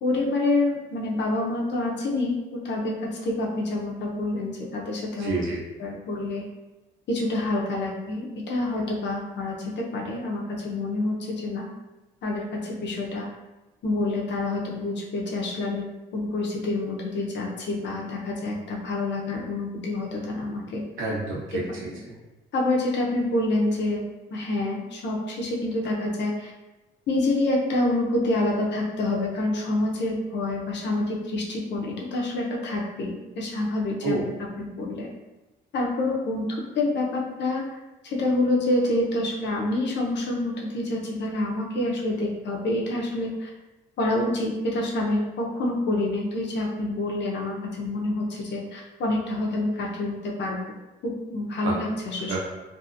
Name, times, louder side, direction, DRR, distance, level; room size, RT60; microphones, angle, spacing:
voice 1, 0.0-5.3 5.8-6.4 7.1-11.7 12.2-13.3 13.8-15.8 16.1-20.8 22.5-24.0 24.3-26.5 27.1-34.2 34.6-35.1 35.7-37.6 38.0-43.5 44.0-50.6 51.0-52.4, left 2 dB, 65° left, -2 dB, 0.7 m, -27 dB
voice 2, 5.2-5.6 21.0-22.2 34.0-34.2 51.6-51.8 52.3-52.4, right 2 dB, 80° right, -4 dB, 0.9 m, -29 dB
2.7 x 2.6 x 2.5 m, 1.1 s
cardioid pair, 90°, 20 cm